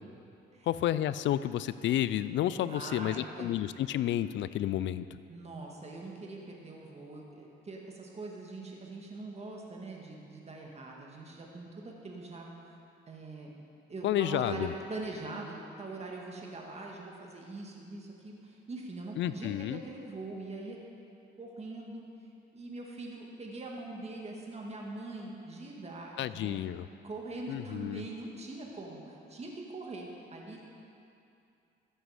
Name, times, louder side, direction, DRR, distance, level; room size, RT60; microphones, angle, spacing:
voice 1, 0.7-5.1 14.0-14.7 19.2-19.8 26.2-26.9 27.5-28.0, left 12 dB, 70° left, 15 dB, 0.4 m, -31 dB
voice 2, 2.7-3.5 5.3-12.5 13.1-13.5 13.9-20.8 21.4-22.1 22.5-26.6 27.0-30.6, right 2 dB, 30° right, -1 dB, 1.8 m, -42 dB
14.0 x 7.6 x 5.0 m, 2.6 s
cardioid pair, 90°, 20 cm